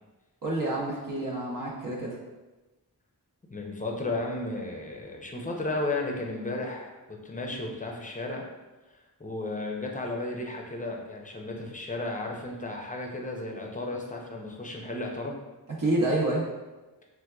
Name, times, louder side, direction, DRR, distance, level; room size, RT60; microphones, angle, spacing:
voice 1, 0.4-2.2 15.8-16.5, right 2 dB, 50° right, -5 dB, 0.7 m, -28 dB
voice 2, 3.5-8.5 8.9-15.4, left 2 dB, 20° left, 0 dB, 0.6 m, -34 dB
4.4 x 2.2 x 2.3 m, 1.1 s
cardioid pair, 40°, 40 cm